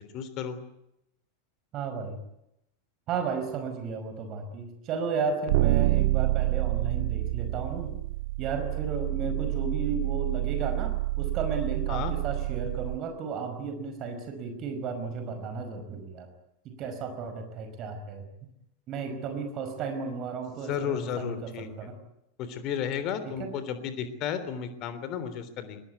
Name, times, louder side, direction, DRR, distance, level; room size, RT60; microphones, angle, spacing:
voice 1, 0.1-0.6 11.9-12.1 20.7-21.9 22.4-25.8, left 8 dB, 40° left, 12 dB, 3.4 m, -33 dB
voice 2, 1.7-2.2 3.1-7.9 8.4-16.3 16.7-18.2 18.9-22.0 23.3-23.5, right 5 dB, 35° right, 7 dB, 5.2 m, -34 dB
sound 1, 5.5-13.0, right 18 dB, 50° right, 1.2 m, -28 dB
22.0 x 21.0 x 9.5 m, 0.83 s
figure-of-eight pair, 90°, 0 cm